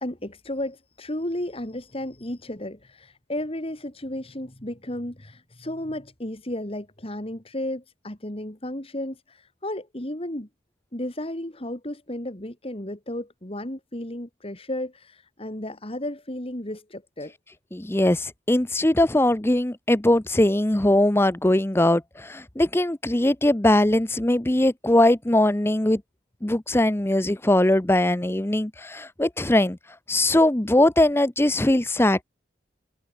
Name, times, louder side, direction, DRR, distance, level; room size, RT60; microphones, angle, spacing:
voice 1, 0.0-10.5 10.9-17.3, left 1 dB, 30° left, 2.6 m, -33 dB
voice 2, 17.7-26.0 26.4-29.8 30.1-32.2, left 1 dB, 15° left, 0.7 m, -21 dB
head